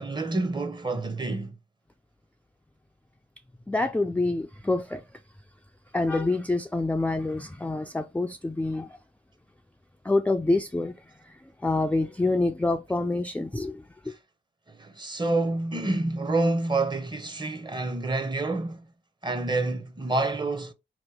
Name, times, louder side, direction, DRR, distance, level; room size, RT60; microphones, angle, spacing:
voice 1, 0.0-1.6 14.7-18.9 19.2-20.7, right 2 dB, 20° right, 0.7 m, -28 dB
voice 2, 3.7-5.0 5.9-9.0 10.0-14.1, left 2 dB, 5° left, 0.3 m, -27 dB
2.9 x 2.2 x 3.4 m
supercardioid pair, 50°, 21 cm